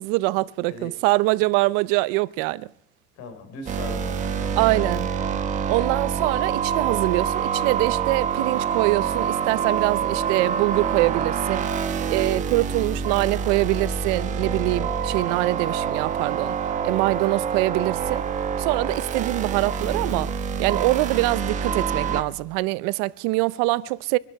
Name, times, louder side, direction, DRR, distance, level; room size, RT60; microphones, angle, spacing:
voice 1, 0.0-2.7 4.6-5.1 5.7-11.7 12.1-16.5 16.8-18.2 18.6-20.3 20.6-24.2, right 21 dB, 70° right, 0.6 m, -24 dB
voice 2, 3.2-4.7 12.3-12.6, left 4 dB, 55° left, 3.8 m, -40 dB
sound 1, 3.7-22.2, right 7 dB, 25° right, 1.1 m, -26 dB
24.5 x 12.5 x 4.7 m
cardioid pair, 175°, 29 cm